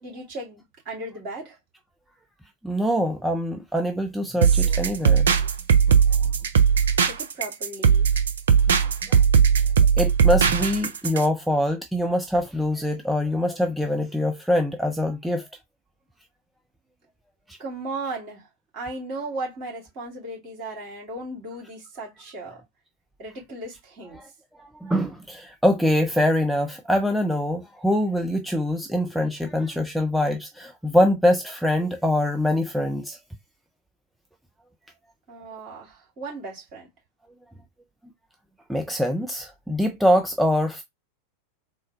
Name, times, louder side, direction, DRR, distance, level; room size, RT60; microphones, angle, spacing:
voice 1, 0.0-1.6 7.0-8.1 17.6-18.5 18.7-22.6 23.2-24.2 35.3-36.9, right 2 dB, 40° right, 2.3 m, -36 dB
voice 2, 2.6-5.3 5.9-6.0 9.1-9.2 10.0-15.5 17.5-17.6 24.8-33.2 38.7-40.8, left 1 dB, ahead, 0.4 m, -24 dB
sound 1, 4.4-11.3, right 7 dB, 65° right, 0.5 m, -19 dB
3.7 x 2.1 x 3.8 m
figure-of-eight pair, 90°, 0 cm